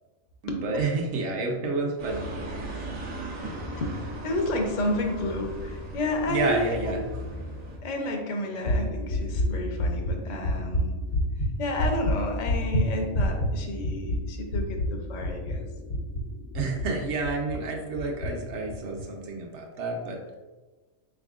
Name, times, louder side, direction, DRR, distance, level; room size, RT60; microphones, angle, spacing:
voice 1, 0.4-2.3 6.3-7.1 16.5-20.2, right 3 dB, 65° right, 1 dB, 0.9 m, -29 dB
sound 1, 2.0-7.8, right 1 dB, 80° right, 1.3 m, -37 dB
voice 2, 4.2-7.0 7.8-10.9 11.6-15.6, left 1 dB, 55° left, 2 dB, 0.4 m, -31 dB
sound 2, 8.6-17.6 18.0-18.3 18.7-19.0, left 1 dB, 80° left, 1.2 m, -28 dB
4.1 x 3.6 x 2.4 m, 1.2 s
omnidirectional pair, 1.4 m